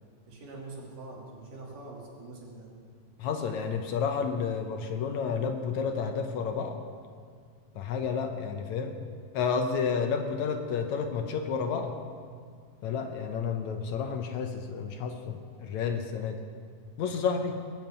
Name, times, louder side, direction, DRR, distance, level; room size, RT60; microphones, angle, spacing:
voice 1, 0.3-2.7, right 2 dB, 80° right, -2 dB, 4.5 m, -44 dB
voice 2, 3.2-6.8 7.8-9.0 9.3-11.9 12.8-16.4 17.0-17.6, left 6 dB, 70° left, 6 dB, 2.1 m, -31 dB
20.5 x 7.7 x 9.0 m, 2.1 s
omnidirectional pair, 3.7 m